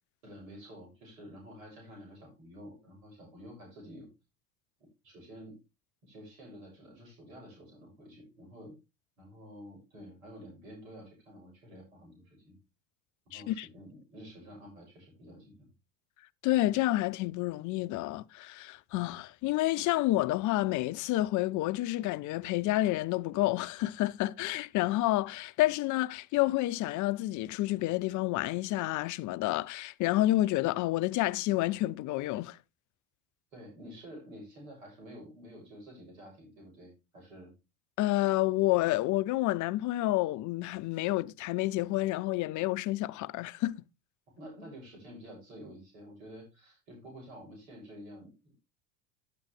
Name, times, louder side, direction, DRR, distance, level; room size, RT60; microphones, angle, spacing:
voice 1, 0.2-4.1 5.0-5.6 6.0-8.8 9.2-12.6 13.3-15.7 33.5-37.5 44.3-48.6, equal, 80° right, 6.9 m, -50 dB
voice 2, 13.3-13.7 16.4-32.6 38.0-43.8, left 17 dB, 50° left, 0.7 m, -29 dB
10.0 x 8.5 x 3.3 m
hypercardioid pair, 80°, 40 cm